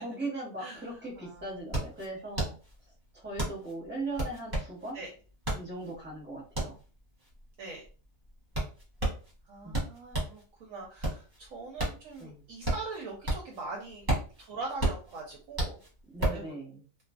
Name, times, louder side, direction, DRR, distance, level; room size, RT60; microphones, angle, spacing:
voice 1, 0.0-2.6 3.1-5.0 5.5-6.8 9.6-9.9 12.2-12.4 16.1-16.8, right 2 dB, 10° right, -4 dB, 0.9 m, -39 dB
sound 1, 1.1-10.4 10.8-13.6 13.9-16.5, right 1 dB, 35° right, 0.9 m, -33 dB
voice 2, 1.2-2.2 4.9-5.1 7.6-7.8 9.5-14.1 14.4-15.8 16.3-16.5, right 3 dB, 70° right, -1 dB, 0.9 m, -42 dB
2.4 x 2.4 x 2.4 m, 0.36 s
omnidirectional pair, 1.7 m